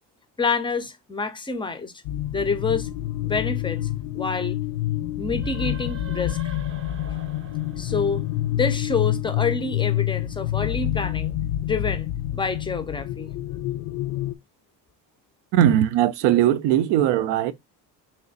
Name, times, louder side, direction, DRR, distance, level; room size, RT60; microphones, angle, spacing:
voice 1, 0.4-1.9 2.3-2.9 3.2-3.9 4.1-4.6 5.2-6.4 7.8-8.3 8.5-11.3 11.6-13.3, left 4 dB, 10° left, 0.4 m, -27 dB
sound 1, 2.0-14.3, left 13 dB, 65° left, 0.5 m, -27 dB
sound 2, 5.2-8.8, right 3 dB, 30° right, 0.7 m, -42 dB
voice 2, 15.5-17.5, right 11 dB, 85° right, 0.6 m, -19 dB
3.3 x 3.1 x 3.9 m
cardioid pair, 135°, 41 cm